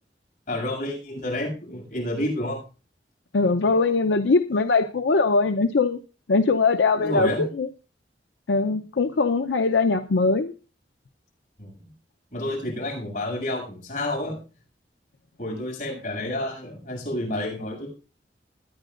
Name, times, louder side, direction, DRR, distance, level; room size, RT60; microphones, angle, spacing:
voice 1, 0.5-2.6 6.9-7.4 11.6-11.9 12.3-14.4 15.4-17.9, left 1 dB, 45° left, -2 dB, 7.0 m, -30 dB
voice 2, 3.3-6.0 6.3-7.7 8.5-10.5, left 3 dB, 90° left, 8 dB, 0.6 m, -21 dB
21.5 x 10.0 x 2.5 m, 0.34 s
head